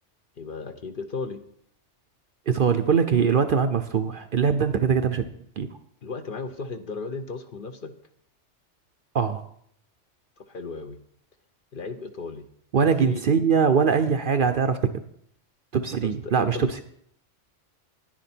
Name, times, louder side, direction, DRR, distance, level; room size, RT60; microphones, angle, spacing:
voice 1, 0.4-1.4 6.0-7.9 10.4-11.0 11.7-12.4 12.8-13.2 16.0-16.8, left 4 dB, 50° left, 8 dB, 0.8 m, -35 dB
voice 2, 2.5-5.3 5.6-5.7 9.1-9.4 12.7-14.8 15.7-16.8, right 6 dB, 55° right, 8 dB, 0.7 m, -22 dB
10.0 x 10.0 x 4.4 m, 0.68 s
omnidirectional pair, 1.3 m